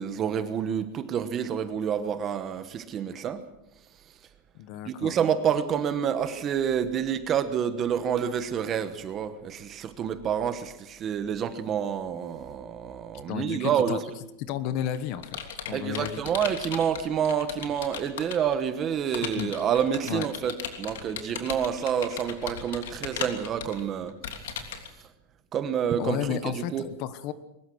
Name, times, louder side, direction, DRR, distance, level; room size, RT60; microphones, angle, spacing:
voice 1, 0.0-3.4 4.8-14.1 15.7-24.2 25.5-26.9, right 8 dB, 20° right, 11 dB, 1.1 m, -28 dB
voice 2, 4.5-5.1 13.3-14.0 14.4-15.4 15.7-16.2 19.4-19.5 20.1-20.3 26.0-27.3, left 10 dB, 35° left, 13 dB, 1.2 m, -32 dB
Computer keyboard, 14.5-18.5 19.1-24.9, left 8 dB, 90° left, 3.2 m, -37 dB
22.5 x 20.5 x 6.3 m, 0.89 s
supercardioid pair, 180°, 0 cm